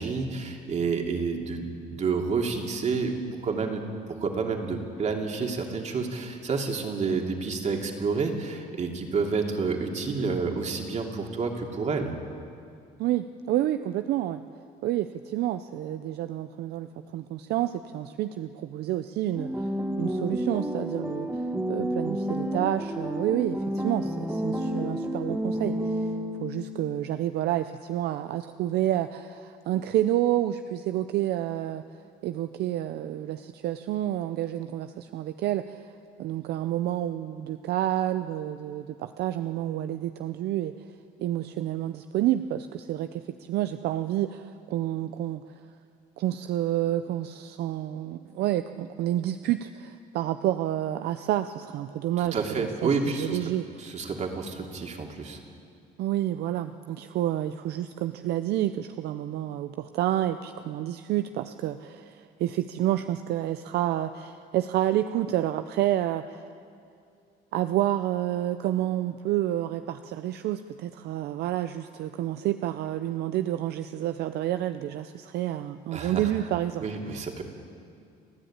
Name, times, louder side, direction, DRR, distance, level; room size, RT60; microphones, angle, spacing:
voice 1, 0.0-3.2 3.4-3.8 4.2-12.1 52.2-53.4 53.8-55.4 75.9-76.3 76.8-77.4, right 4 dB, 45° right, 2 dB, 2.8 m, -29 dB
voice 2, 13.0-14.4 14.8-16.9 17.1-19.7 20.0-21.3 21.7-26.0 26.4-31.8 32.2-35.9 36.2-40.7 41.2-45.4 46.2-53.6 56.0-66.4 67.5-76.9 77.1-77.2, right 13 dB, 75° right, 10 dB, 0.6 m, -29 dB
sound 1, 19.4-26.6, equal, 10° right, 1.8 m, -30 dB
30.0 x 10.5 x 8.8 m, 2.5 s
cardioid pair, 110°, 17 cm